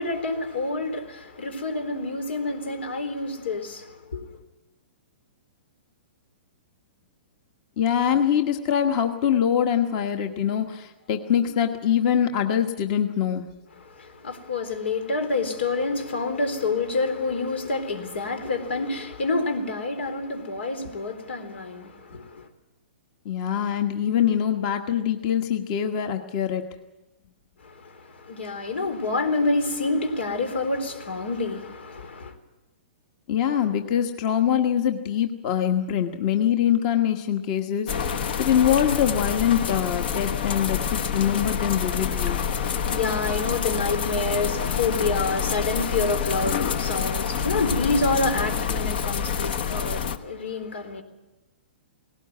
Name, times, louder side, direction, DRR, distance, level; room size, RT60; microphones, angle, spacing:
voice 1, 0.0-4.4 13.8-22.5 27.6-32.3 42.1-51.0, left 3 dB, 90° left, 3.9 m, -28 dB
voice 2, 7.8-13.5 23.2-26.7 33.3-42.4, left 9 dB, 40° left, 1.4 m, -24 dB
sound 1, 37.9-50.2, left 7 dB, 60° left, 1.3 m, -27 dB
19.0 x 17.5 x 9.4 m
hypercardioid pair, 155°, 6 cm